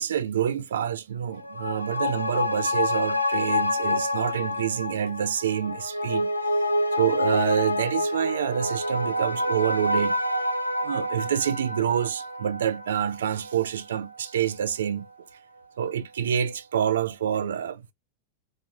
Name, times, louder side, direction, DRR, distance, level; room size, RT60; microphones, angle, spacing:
voice 1, 0.0-6.3 6.9-10.1 10.8-15.1 15.8-17.9, right 9 dB, 65° right, 0.4 m, -27 dB
sound 1, 1.3-14.2 14.5-14.6, left 2 dB, 85° left, 0.4 m, -28 dB
3.9 x 2.3 x 2.4 m
figure-of-eight pair, 90°, 0 cm